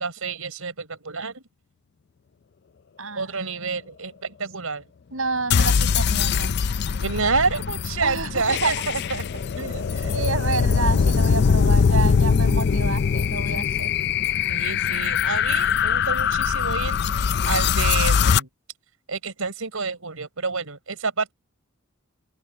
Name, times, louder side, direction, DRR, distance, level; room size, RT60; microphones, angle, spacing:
voice 1, 0.0-1.4 3.1-4.8 7.0-10.1 14.5-18.5 19.1-21.3, right 4 dB, 90° right, 4.4 m, -29 dB
voice 2, 5.1-6.5 8.0-8.7 10.1-14.0, right 3 dB, 70° right, 6.6 m, -29 dB
sound 1, 5.5-18.4, left 6 dB, 50° left, 0.4 m, -22 dB
open air
head